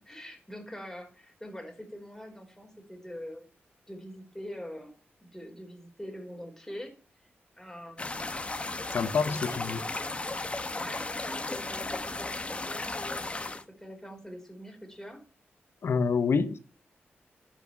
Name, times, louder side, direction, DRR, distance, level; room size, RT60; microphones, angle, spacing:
voice 1, 0.0-3.5 3.9-4.9 5.2-6.9 7.6-8.3 9.0-9.9 10.7-15.2, equal, 10° left, 4.8 m, -44 dB
sound 1, 8.0-13.6, left 2 dB, 25° left, 1.4 m, -35 dB
voice 2, 8.9-9.8 15.8-16.6, left 5 dB, 70° left, 1.3 m, -27 dB
11.0 x 6.8 x 8.5 m
cardioid pair, 75°, 4 cm